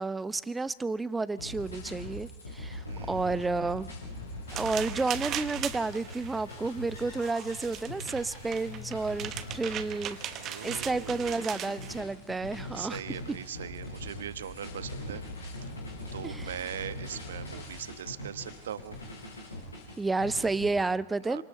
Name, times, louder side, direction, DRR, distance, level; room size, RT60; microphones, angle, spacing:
voice 1, 0.0-3.9 4.5-10.2 10.6-13.0 16.2-16.6 20.0-21.4, right 3 dB, 10° right, 17 dB, 0.7 m, -31 dB
sound 1, 1.4-20.7, left 1 dB, 75° left, 7.5 m, -42 dB
voice 2, 2.8-3.2 10.3-11.5 12.7-15.2 15.6-15.7 16.1-19.0 21.2-21.4, right 9 dB, 65° right, 13 dB, 1.1 m, -40 dB
sound 2, 4.5-12.0, right 11 dB, 30° right, 1.1 m, -39 dB
27.5 x 26.0 x 4.2 m, 0.87 s
figure-of-eight pair, 90°, 0 cm